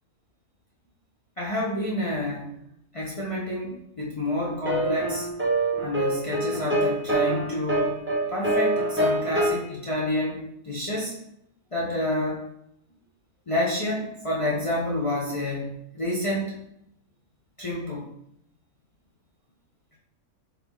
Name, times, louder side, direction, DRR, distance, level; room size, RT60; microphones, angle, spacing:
voice 1, 1.4-2.5 2.9-5.3 5.8-8.0 8.3-11.2 11.7-12.4 13.5-16.6 17.6-18.1, left 1 dB, 50° left, -6 dB, 0.4 m, -28 dB
sound 1, 4.6-9.6, right 1 dB, 15° right, 0.4 m, -25 dB
3.6 x 3.2 x 3.1 m, 0.76 s
omnidirectional pair, 1.5 m